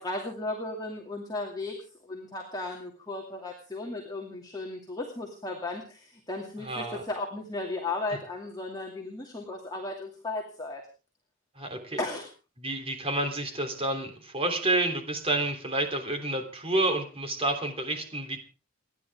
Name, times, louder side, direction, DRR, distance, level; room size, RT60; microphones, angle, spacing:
voice 1, 0.0-1.8 2.0-10.8 12.0-12.3, left 2 dB, 20° left, 0 dB, 2.6 m, -35 dB
voice 2, 6.6-7.0 11.6-12.0 12.6-18.4, right 2 dB, 30° right, 5 dB, 3.3 m, -29 dB
29.5 x 11.0 x 3.6 m, 0.35 s
head